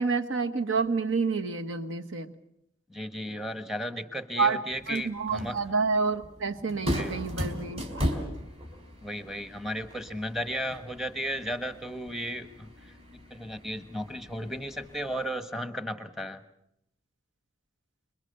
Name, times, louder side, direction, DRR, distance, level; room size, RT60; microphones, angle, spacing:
voice 1, 0.0-2.3 4.4-4.6 4.9-7.8, right 4 dB, 70° right, 7 dB, 1.4 m, -28 dB
voice 2, 2.9-5.6 7.0-7.2 9.0-16.4, equal, ahead, 10 dB, 1.2 m, -35 dB
sound 1, 4.7-15.3, equal, 30° right, 3.9 m, -38 dB
27.5 x 22.5 x 6.8 m, 0.79 s
head